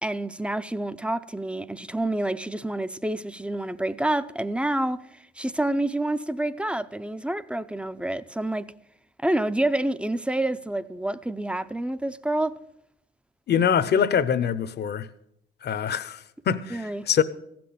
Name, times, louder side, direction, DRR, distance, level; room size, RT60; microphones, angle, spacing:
voice 1, 0.0-5.0 5.4-8.7 9.2-12.6 16.7-17.0, right 1 dB, 5° right, 0.5 m, -28 dB
voice 2, 13.5-15.1 15.6-17.2, left 8 dB, 55° left, 0.8 m, -24 dB
15.0 x 6.0 x 8.6 m
cardioid pair, 90°, 20 cm